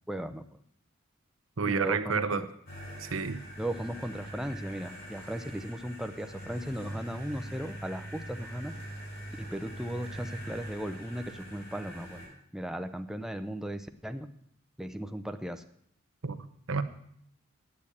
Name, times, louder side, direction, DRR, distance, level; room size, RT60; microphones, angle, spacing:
voice 1, 0.1-0.6 1.7-2.5 3.6-8.7 9.4-12.2 12.5-14.3 14.8-15.6, right 1 dB, ahead, 7 dB, 0.4 m, -36 dB
voice 2, 1.6-2.4 3.0-3.4 16.2-16.8, right 5 dB, 80° right, 10 dB, 0.9 m, -30 dB
sound 1, 2.7-12.3, right 1 dB, 45° left, 5.2 m, -43 dB
8.8 x 8.5 x 8.5 m, 0.69 s
head